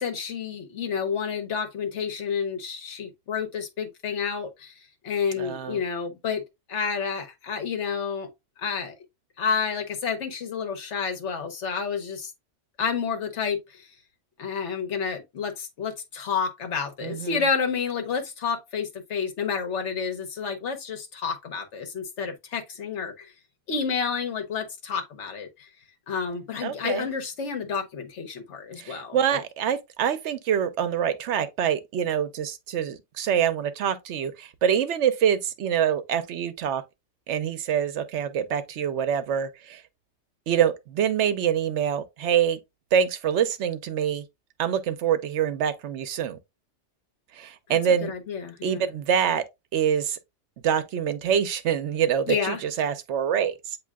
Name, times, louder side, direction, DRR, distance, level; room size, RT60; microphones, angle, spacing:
voice 1, 0.0-4.7 5.0-6.4 6.7-8.3 8.6-8.9 9.4-12.3 12.8-13.9 14.4-23.3 23.7-25.7 26.1-29.4 47.7-48.8 52.3-52.6, left 6 dB, 75° left, 1.3 m, -30 dB
voice 2, 5.4-5.8 17.0-17.5 26.6-27.1 28.8-36.8 37.3-39.8 40.5-42.6 42.9-44.2 44.6-46.4 47.3-48.1 48.6-49.4 49.7-50.2 50.6-53.8, right 8 dB, 75° right, 0.9 m, -25 dB
8.3 x 2.8 x 2.2 m
omnidirectional pair, 1.2 m